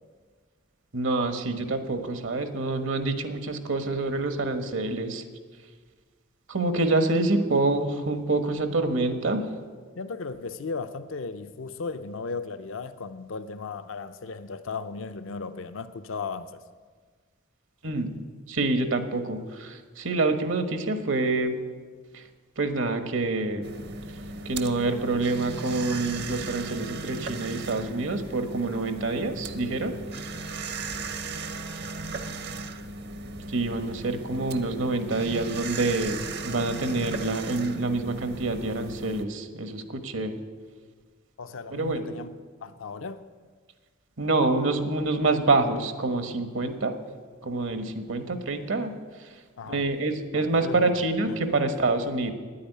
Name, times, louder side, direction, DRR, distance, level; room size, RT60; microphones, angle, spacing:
voice 1, 0.9-5.2 6.5-9.5 17.8-18.2 18.5-21.6 22.1-22.2 22.6-23.7 24.4-30.0 33.5-40.4 41.7-42.1 44.2-46.9 47.4-49.3 49.7-52.3, right 2 dB, 75° right, 1.2 m, -27 dB
voice 2, 10.0-16.6 30.9-31.1 41.4-42.3 42.6-43.3 49.6-49.9 50.3-51.7, left 4 dB, 80° left, 0.6 m, -36 dB
sound 1, 23.6-39.2, right 3 dB, 55° right, 0.8 m, -37 dB
9.6 x 8.6 x 9.9 m
head